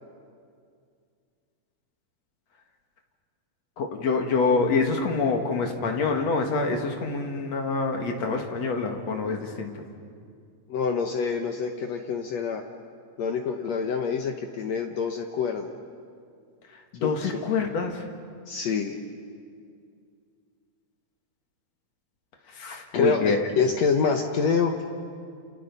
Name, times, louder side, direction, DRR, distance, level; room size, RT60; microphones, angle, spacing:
voice 1, 3.8-9.9 16.7-18.1 22.5-23.5, left 4 dB, 50° left, 3 dB, 2.5 m, -26 dB
voice 2, 10.7-12.6 13.2-15.7 17.0-17.1 18.5-19.0 22.9-24.8, left 5 dB, 80° left, 4 dB, 1.5 m, -26 dB
29.5 x 29.0 x 5.4 m, 2.2 s
omnidirectional pair, 4.6 m